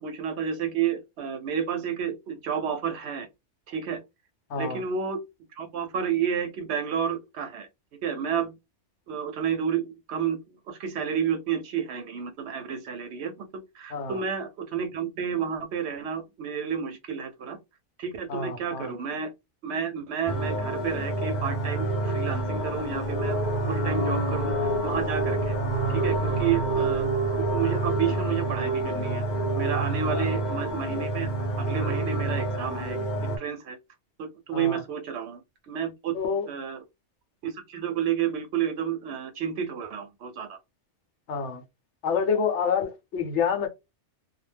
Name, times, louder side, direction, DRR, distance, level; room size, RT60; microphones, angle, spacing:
voice 1, 0.0-3.3 3.7-4.0 4.6-5.2 5.6-7.7 8.0-8.5 9.1-13.5 13.7-17.6 18.0-19.3 19.6-23.4 23.7-25.5 25.9-27.1 27.4-29.2 29.5-31.3 31.6-33.8 34.2-35.4 35.7-36.2 36.5-36.8 37.4-40.6, right 7 dB, 70° right, 0.8 m, -30 dB
voice 2, 4.5-4.8 13.9-14.2 18.3-18.9 30.1-30.3 34.5-34.8 36.1-36.5 41.3-41.6 42.0-43.7, left 6 dB, 75° left, 1.0 m, -28 dB
sound 1, 20.3-33.4, right 2 dB, 45° left, 0.8 m, -27 dB
2.2 x 2.1 x 3.2 m
omnidirectional pair, 1.2 m